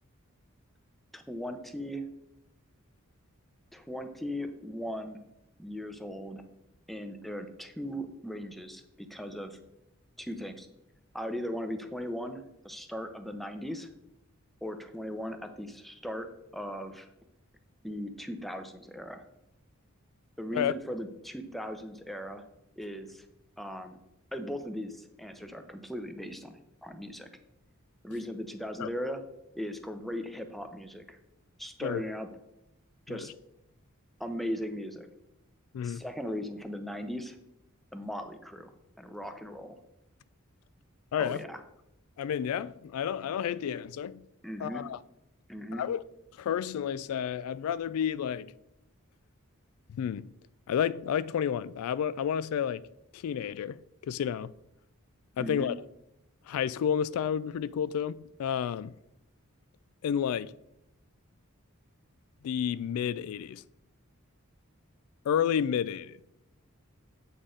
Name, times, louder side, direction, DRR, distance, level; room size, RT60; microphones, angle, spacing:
voice 1, 1.1-2.1 3.7-5.2 5.6-6.5 6.9-9.6 10.2-10.7 11.1-13.9 14.6-17.1 17.8-19.2 20.4-22.4 22.8-23.2 23.6-24.0 24.3-27.3 28.0-29.2 29.5-31.2 31.6-32.3 33.1-33.3 34.2-35.1 35.8-37.4 37.9-38.7 39.0-39.8 41.2-41.6 44.4-44.9 45.5-45.9 55.4-55.7, equal, ahead, 0.6 m, -38 dB
voice 2, 35.7-36.0 41.1-41.4 42.2-44.2 44.6-45.0 45.7-46.0 46.4-48.5 49.9-50.3 50.7-52.9 53.1-53.8 54.1-54.5 55.4-55.7 56.5-58.9 60.0-60.5 62.4-63.6 65.3-66.2, left 8 dB, 90° left, 0.3 m, -30 dB
8.1 x 6.1 x 3.8 m
head